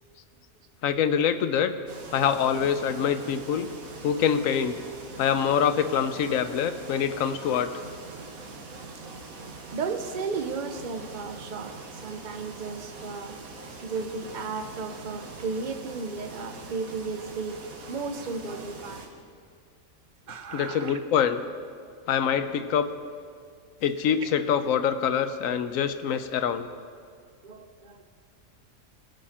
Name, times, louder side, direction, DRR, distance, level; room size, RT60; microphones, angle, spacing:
voice 1, 0.8-1.7 2.1-3.7 4.0-4.8 5.2-7.7 20.5-21.4 22.1-22.9 23.8-26.7, left 8 dB, 75° left, 11 dB, 1.1 m, -25 dB
sound 1, 1.9-19.1, right 3 dB, 90° right, 1.7 m, -43 dB
voice 2, 9.7-13.4 13.8-19.1 20.3-21.0 21.8-21.9 24.2-24.3 25.7-26.2 27.4-28.0, right 4 dB, 40° right, 7 dB, 0.8 m, -35 dB
20.0 x 8.1 x 4.3 m, 2.1 s
omnidirectional pair, 1.4 m